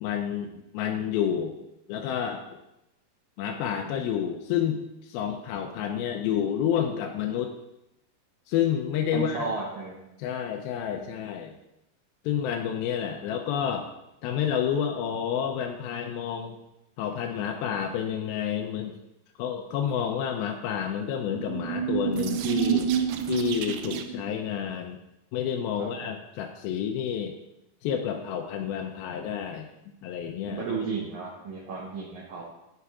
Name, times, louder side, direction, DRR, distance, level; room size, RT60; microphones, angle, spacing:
voice 1, 0.0-1.6 1.9-2.4 3.4-7.6 8.5-9.5 10.2-11.5 12.2-13.9 14.2-16.6 17.0-18.9 19.4-22.9 23.3-25.0 25.3-27.4 27.8-30.6, left 9 dB, 80° left, 2 dB, 2.3 m, -29 dB
voice 2, 9.1-10.0 25.8-26.1 30.5-32.5, right 4 dB, 65° right, -5 dB, 2.1 m, -33 dB
sound 1, 21.1-24.3, right 8 dB, 90° right, 2.6 m, -28 dB
9.5 x 3.3 x 4.7 m, 0.88 s
omnidirectional pair, 4.5 m